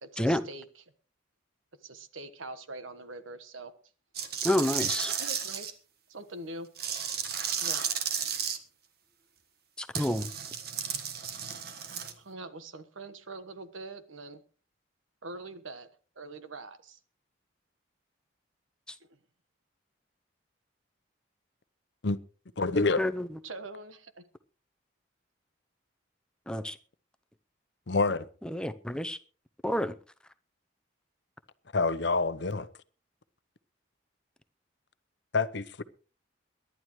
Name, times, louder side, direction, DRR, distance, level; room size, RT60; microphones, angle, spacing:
voice 1, 0.0-0.7 1.8-3.7 5.2-5.7 6.1-6.7 7.6-7.9 11.6-11.7 12.2-14.4 15.2-15.9 16.1-17.0 22.7-22.8 23.4-24.3, right 2 dB, 90° right, 1.3 m, -43 dB
sound 1, 4.1-5.7 6.8-8.6 9.9-12.1, right 8 dB, 50° right, 1.4 m, -33 dB
voice 2, 4.4-5.2 9.8-10.3 23.0-23.4 26.5-26.8 28.4-29.2 29.6-30.0, left 1 dB, 5° left, 0.6 m, -29 dB
voice 3, 22.6-23.0 27.9-28.3 31.7-32.7 35.3-35.8, left 3 dB, 60° left, 0.8 m, -27 dB
23.5 x 11.5 x 3.1 m
head